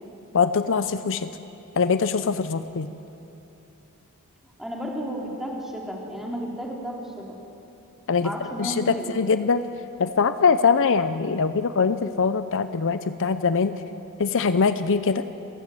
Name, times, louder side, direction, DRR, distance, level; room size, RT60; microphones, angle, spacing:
voice 1, 0.3-1.3 1.8-2.9 8.1-8.3 8.6-9.6 10.0-13.7 14.2-15.2, left 5 dB, 60° left, 12 dB, 0.6 m, -22 dB
voice 2, 4.6-7.4 8.2-9.1, equal, ahead, -2 dB, 3.3 m, -33 dB
28.0 x 15.5 x 7.7 m, 2.9 s
head